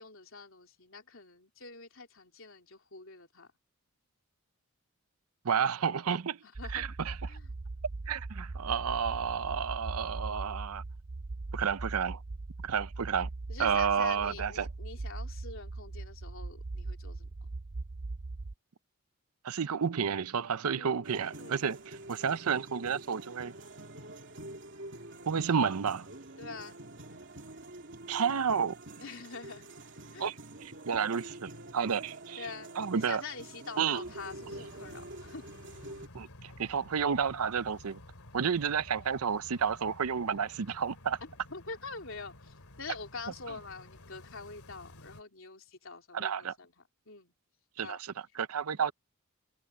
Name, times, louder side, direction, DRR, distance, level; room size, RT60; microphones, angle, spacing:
voice 1, 0.0-3.5 6.4-6.9 7.3-7.5 13.5-17.5 20.8-21.1 21.4-21.7 26.4-26.8 29.0-29.7 30.1-30.3 32.4-35.5 41.2-47.3 47.8-48.0, left 4 dB, 60° left, 3.7 m, -45 dB
voice 2, 5.4-6.4 6.7-7.2 8.1-10.8 11.5-12.2 12.6-13.3 13.6-14.7 19.4-21.8 22.1-23.5 25.3-26.1 28.1-28.8 30.2-30.3 30.9-32.4 32.8-33.2 33.8-34.0 36.1-38.0 38.3-41.2 46.1-46.5 47.8-48.0 48.4-48.9, right 6 dB, 80° right, 0.6 m, -31 dB
sound 1, 6.6-18.5, right 3 dB, 35° right, 0.5 m, -40 dB
sound 2, 21.0-36.1, right 2 dB, 55° right, 2.9 m, -47 dB
sound 3, 34.0-45.2, left 1 dB, 85° left, 2.5 m, -53 dB
head